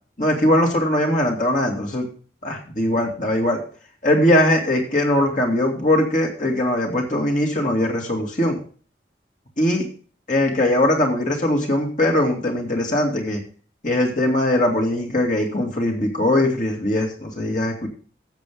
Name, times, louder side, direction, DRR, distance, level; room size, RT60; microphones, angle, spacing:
voice 1, 0.2-2.1 2.4-3.6 4.0-8.6 9.6-9.8 10.3-13.4 13.8-17.9, left 1 dB, 45° left, 0 dB, 2.2 m, -20 dB
13.0 x 7.4 x 3.6 m, 0.41 s
head